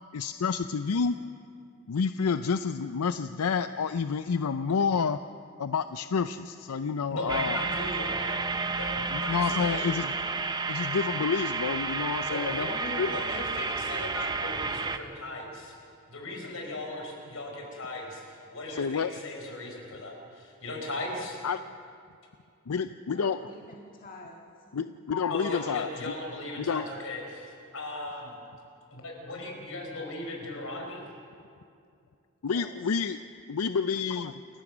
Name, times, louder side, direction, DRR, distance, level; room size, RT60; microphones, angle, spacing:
voice 1, 0.1-1.1 1.9-5.2 5.6-7.6 9.1-10.1 10.7-13.2 18.7-19.1 21.4-21.6 22.7-23.4 24.7-26.1 26.6-26.8 32.4-33.2 33.5-34.4, left 5 dB, 85° left, 11 dB, 0.5 m, -29 dB
voice 2, 7.1-8.4 8.7-9.9 12.2-15.7 16.1-21.4 25.3-28.4 28.9-31.1, left 1 dB, 65° left, 1 dB, 4.8 m, -38 dB
sound 1, 7.3-15.0, right 4 dB, 20° right, 0.7 m, -31 dB
voice 3, 23.0-25.1 32.5-32.9, left 1 dB, 40° left, -1 dB, 1.8 m, -49 dB
28.0 x 16.0 x 6.2 m, 2.4 s
head